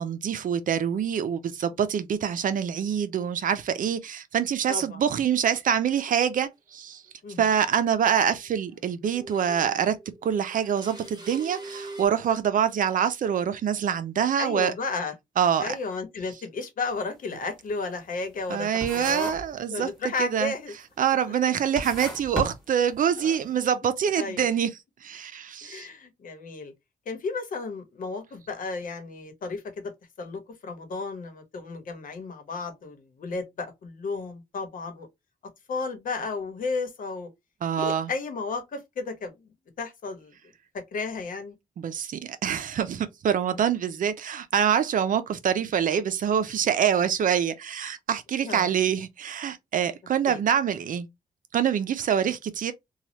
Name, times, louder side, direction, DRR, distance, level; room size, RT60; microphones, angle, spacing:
voice 1, 0.0-7.0 7.4-10.0 10.2-14.7 15.4-15.8 18.5-19.9 20.2-20.5 21.0-24.7 25.0-25.9 37.6-38.1 41.8-51.1 51.5-52.7, right 8 dB, 70° right, 0.5 m, -25 dB
voice 2, 4.7-5.0 7.2-7.4 14.4-15.1 15.6-19.3 19.7-20.7 23.2-23.4 24.1-24.5 25.6-26.7 27.1-29.9 30.2-35.1 35.7-37.3 37.8-40.3 40.7-41.6 43.5-43.6 48.4-48.7 50.3-50.4, left 4 dB, 75° left, 1.0 m, -33 dB
sound 1, 6.1-6.2 7.4-7.5 7.9-8.8 9.1-12.1, right 2 dB, 30° right, 1.2 m, -43 dB
sound 2, 16.9-17.1 17.5-18.6 18.8-19.6 19.9-20.4 21.0-21.1 21.6-23.3, right 1 dB, ahead, 1.5 m, -35 dB
3.1 x 2.3 x 2.8 m
wide cardioid pair, 110°, 14 cm